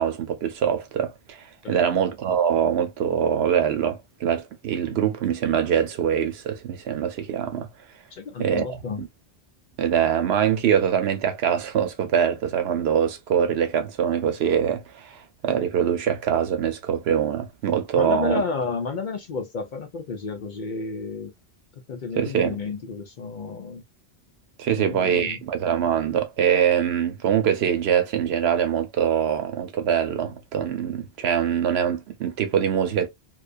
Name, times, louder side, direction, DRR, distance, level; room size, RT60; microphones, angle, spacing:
voice 1, 0.0-7.7 8.4-8.6 9.0-9.1 9.8-18.4 22.2-22.6 24.6-33.1, right 8 dB, 75° right, 0.8 m, -23 dB
voice 2, 1.6-2.0 8.1-9.0 18.0-21.3 21.9-23.8 24.7-25.4, left 4 dB, 55° left, 0.6 m, -31 dB
2.3 x 2.2 x 2.3 m
omnidirectional pair, 1.1 m